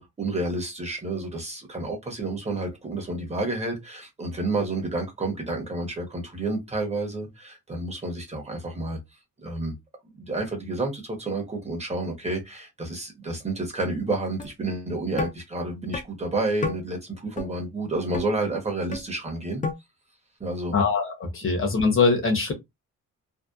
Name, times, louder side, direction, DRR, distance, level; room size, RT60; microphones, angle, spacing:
voice 1, 0.0-9.0 9.4-9.7 10.1-19.6 20.4-20.7, right 2 dB, 20° right, 0.9 m, -30 dB
sound 1, 14.4-14.5 15.2-15.3 15.9-16.0 16.6-16.8 17.4-17.5 18.1-18.3 18.9-19.1 19.6-19.7, left 4 dB, 25° left, 0.5 m, -29 dB
voice 2, 20.7-22.5, left 4 dB, 40° left, 0.8 m, -22 dB
2.7 x 2.1 x 2.3 m
cardioid pair, 125°, 32 cm